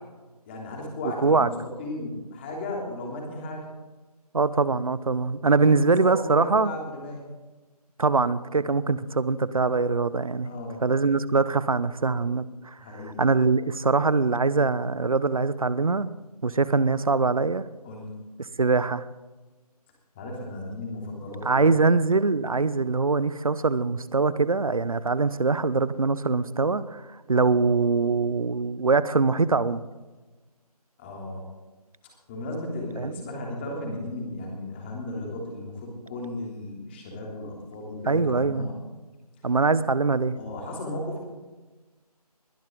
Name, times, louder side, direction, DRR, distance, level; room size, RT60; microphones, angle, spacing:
voice 1, 0.5-1.5 1.8-3.7 5.6-5.7 6.0-7.2 8.7-9.0 10.4-10.8 12.8-13.2 17.8-18.1 20.1-21.7 31.0-31.4 32.3-38.8 40.4-41.2, left 1 dB, 15° left, 3.2 m, -35 dB
voice 2, 1.0-1.5 4.3-6.7 8.0-10.5 10.8-12.7 13.2-16.1 16.4-17.6 18.6-19.0 21.4-27.0 27.3-29.8 33.0-33.2 38.1-38.7 39.4-40.4, right 4 dB, 60° right, 0.9 m, -23 dB
21.5 x 12.0 x 3.9 m
figure-of-eight pair, 160°, 20 cm